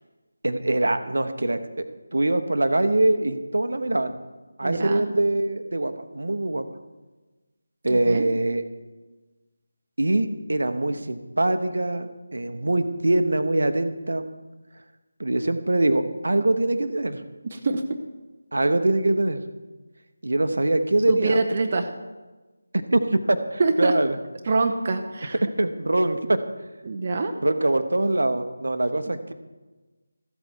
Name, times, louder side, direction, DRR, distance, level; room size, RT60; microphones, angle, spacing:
voice 1, 0.4-1.8 2.1-4.2 4.6-6.7 7.8-8.6 10.0-14.2 15.2-17.2 18.5-19.4 20.2-21.4 22.9-24.2 25.6-26.4 27.4-29.3, right 2 dB, 60° right, 10 dB, 0.9 m, -23 dB
voice 2, 4.6-5.0 7.9-8.2 17.5-17.8 21.1-21.9 23.6-23.9 24.5-25.4 26.8-27.3, right 3 dB, 35° right, 4 dB, 0.7 m, -24 dB
14.0 x 8.0 x 4.5 m, 1.2 s
figure-of-eight pair, 160°, 0 cm